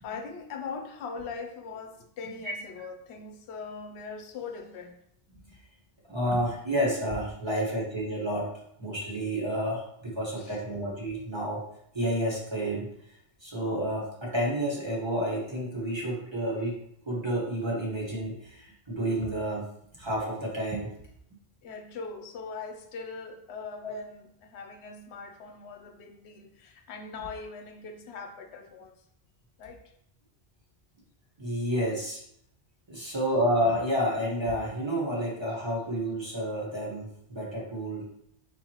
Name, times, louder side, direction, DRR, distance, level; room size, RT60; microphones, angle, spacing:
voice 1, 0.0-5.0 10.4-10.6 21.6-29.0 29.6-29.8 33.0-33.2, left 4 dB, 80° left, 5 dB, 0.9 m, -41 dB
voice 2, 6.1-8.5 8.8-11.6 11.9-12.9 13.4-16.8 17.1-19.7 20.0-20.9 23.8-23.9 31.4-32.2 32.9-38.1, equal, 25° right, -4 dB, 1.1 m, -30 dB
4.6 x 3.9 x 2.9 m, 0.72 s
omnidirectional pair, 1.1 m